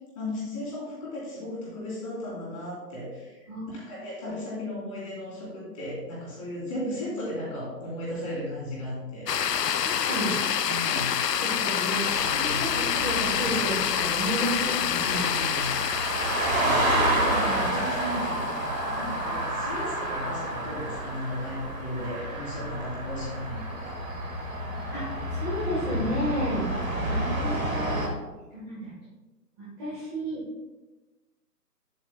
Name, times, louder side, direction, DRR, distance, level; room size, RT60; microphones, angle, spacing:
voice 1, 0.1-9.8 10.6-11.1 12.1-12.7 15.0-24.0, left 1 dB, 20° left, -5 dB, 2.6 m, -36 dB
sound 1, 9.3-19.6, left 8 dB, 75° left, 0.6 m, -28 dB
voice 2, 9.8-10.4 11.4-12.0 12.3-15.2 17.2-17.8 24.9-27.9 28.5-28.9 29.6-30.4, right 1 dB, 15° right, -11 dB, 1.4 m, -32 dB
sound 2, 12.1-28.1, right 1 dB, 55° right, 1.8 m, -30 dB
9.6 x 7.8 x 2.2 m, 1.1 s
figure-of-eight pair, 155°, 49 cm